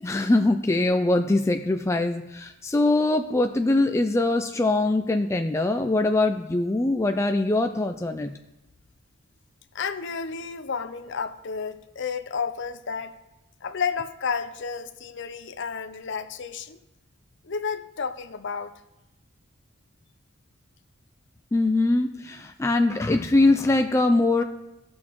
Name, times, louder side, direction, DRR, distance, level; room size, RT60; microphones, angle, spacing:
voice 1, 0.0-8.3 21.5-24.4, left 2 dB, 15° left, 0.3 m, -22 dB
voice 2, 9.7-13.2 13.6-16.8 17.4-18.7 24.4-24.5, left 5 dB, 60° left, 0.6 m, -31 dB
18.0 x 6.2 x 3.1 m
head